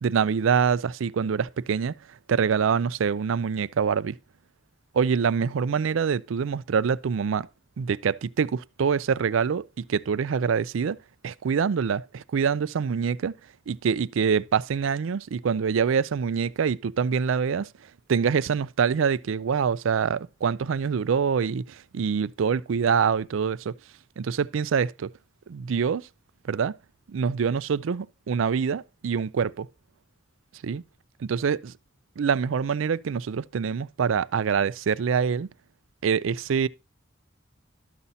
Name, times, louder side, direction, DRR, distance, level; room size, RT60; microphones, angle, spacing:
voice 1, 0.0-1.9 2.3-4.2 4.9-7.5 7.8-11.0 11.2-13.3 13.7-17.7 18.1-23.7 24.2-25.1 25.5-26.1 26.5-26.7 27.1-29.7 30.6-30.8 31.2-31.7 32.2-35.5 36.0-36.7, right 6 dB, 80° right, 0.4 m, -25 dB
12.5 x 5.6 x 4.0 m
head